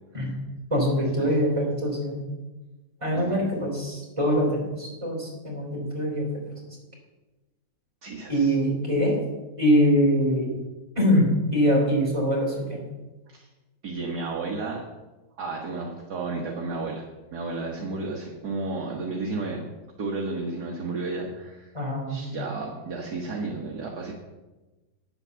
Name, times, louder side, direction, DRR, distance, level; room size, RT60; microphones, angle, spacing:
voice 1, 0.7-2.2 3.0-6.2 8.3-9.2 9.6-10.5 11.0-11.3 11.5-12.8 21.7-22.3, equal, 15° right, -3 dB, 3.7 m, -23 dB
voice 2, 3.1-3.5 8.0-8.6 13.3-13.5 13.8-14.8 15.4-19.7 20.0-21.7 22.1-24.1, right 3 dB, 60° right, -1 dB, 1.8 m, -32 dB
9.6 x 8.8 x 6.9 m, 1.1 s
omnidirectional pair, 2.0 m